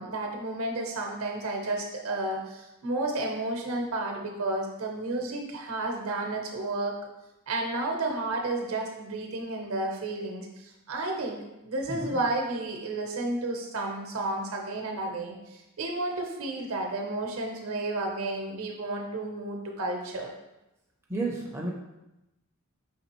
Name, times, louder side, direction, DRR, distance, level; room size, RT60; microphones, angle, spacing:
voice 1, 0.0-7.0 7.5-20.3, right 2 dB, 70° right, 1 dB, 0.8 m, -32 dB
voice 2, 21.1-21.7, right 2 dB, 10° right, -2 dB, 0.4 m, -32 dB
5.1 x 3.3 x 2.9 m, 0.95 s
head